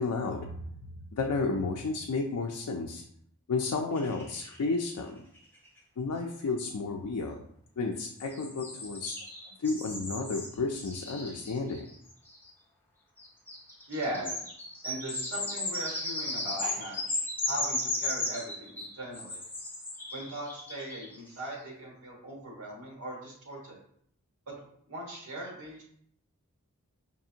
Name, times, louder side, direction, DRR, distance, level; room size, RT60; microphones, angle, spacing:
voice 1, 0.0-3.0 3.5-5.2 6.0-7.4 7.8-9.2 9.6-11.9 16.6-16.8, left 3 dB, 85° left, 1 dB, 0.4 m, -32 dB
sound 1, 4.0-5.0 5.4-5.5 5.7-5.8 8.0-12.5 13.2-21.4, left 2 dB, 10° left, 0.7 m, -36 dB
voice 2, 13.9-14.5 14.8-17.0 17.4-19.4 20.1-23.8 24.5-24.6 24.9-25.8, right 1 dB, 70° right, -2 dB, 1.4 m, -39 dB
5.2 x 2.5 x 2.7 m, 0.66 s
head